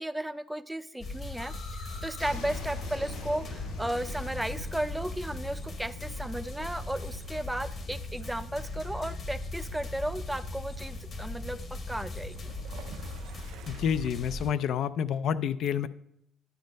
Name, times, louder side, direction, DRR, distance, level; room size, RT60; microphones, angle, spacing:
voice 1, 0.0-12.4, right 1 dB, 5° right, 13 dB, 0.5 m, -35 dB
sound 1, 1.0-14.5, left 2 dB, 40° left, 1.2 m, -39 dB
sound 2, 1.4-7.1, left 2 dB, 90° left, 2.4 m, -44 dB
Waves surf / Splash splatter / Trickle dribble, 3.9-14.1, right 7 dB, 80° right, 0.6 m, -52 dB
voice 2, 13.7-15.9, left 8 dB, 65° left, 14 dB, 0.4 m, -29 dB
11.5 x 5.2 x 5.2 m, 0.75 s
cardioid pair, 110°, 0 cm